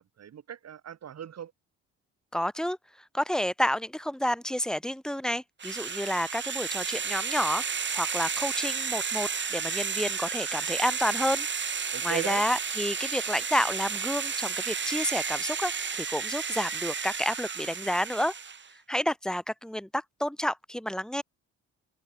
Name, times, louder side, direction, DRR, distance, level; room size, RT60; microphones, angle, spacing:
voice 1, 0.0-1.5 11.9-12.4, right 9 dB, 60° right, 4.3 m, -38 dB
voice 2, 2.3-2.8 3.1-7.6 7.9-11.5 11.8-18.3 18.9-21.2, equal, ahead, 1.4 m, -30 dB
sound 1, 5.6-18.7, right 6 dB, 40° right, 2.4 m, -32 dB
open air
cardioid pair, 90°, 30 cm